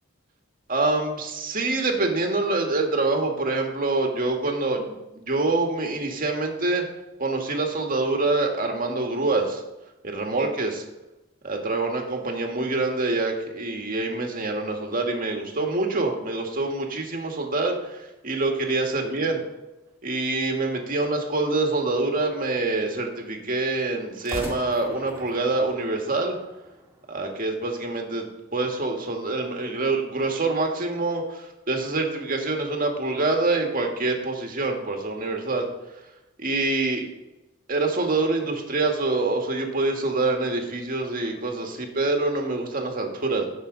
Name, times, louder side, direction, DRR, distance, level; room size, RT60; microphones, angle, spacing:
voice 1, 0.7-6.9 7.2-9.6 10.0-10.8 11.4-19.4 20.0-26.4 27.1-28.3 28.5-35.7 36.4-37.0 37.7-43.5, right 2 dB, 45° right, 2 dB, 1.8 m, -26 dB
sound 1, 18.3-20.1 24.1-27.2, right 1 dB, 15° right, 2.0 m, -42 dB
16.0 x 6.3 x 4.0 m, 1.0 s
head